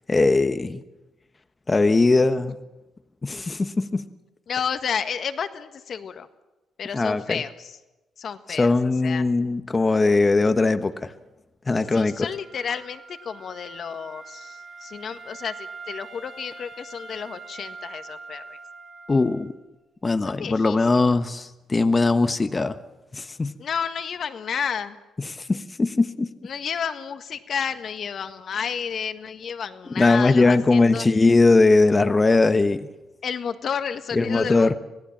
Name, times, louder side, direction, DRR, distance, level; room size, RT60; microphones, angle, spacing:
voice 1, 0.1-0.8 1.7-2.6 3.2-4.1 6.9-7.4 8.5-11.1 11.7-12.3 19.1-19.5 20.0-22.8 23.1-23.6 25.3-26.3 30.0-32.9 34.1-34.7, left 3 dB, 25° left, 10 dB, 1.1 m, -20 dB
voice 2, 4.5-6.3 6.8-7.8 8.2-9.2 11.9-18.6 20.2-21.2 23.6-25.0 26.4-31.1 33.2-34.8, left 7 dB, 55° left, 9 dB, 1.6 m, -31 dB
Wind instrument woodwind instrument, 11.8-19.6, right 4 dB, 45° right, 4.4 m, -43 dB
25.5 x 17.5 x 7.4 m, 1.1 s
cardioid pair, 90°, 0 cm